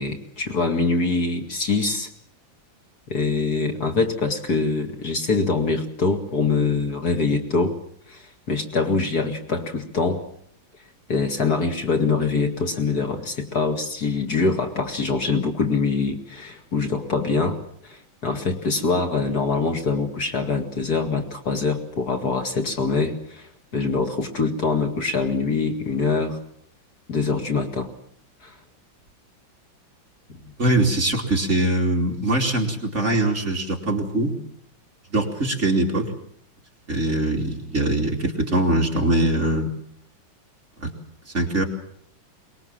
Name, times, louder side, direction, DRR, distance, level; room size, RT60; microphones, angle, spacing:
voice 1, 0.0-2.1 3.1-7.8 8.1-10.2 11.1-17.6 17.8-26.4 27.1-27.9 28.4-28.5 30.3-30.4, left 4 dB, 50° left, 4 dB, 2.6 m, -24 dB
voice 2, 30.6-34.4 35.1-36.1 36.9-39.7 40.8-40.9 41.3-41.6, right 1 dB, 35° right, 1 dB, 3.2 m, -22 dB
23.5 x 21.0 x 7.5 m, 0.65 s
omnidirectional pair, 2.1 m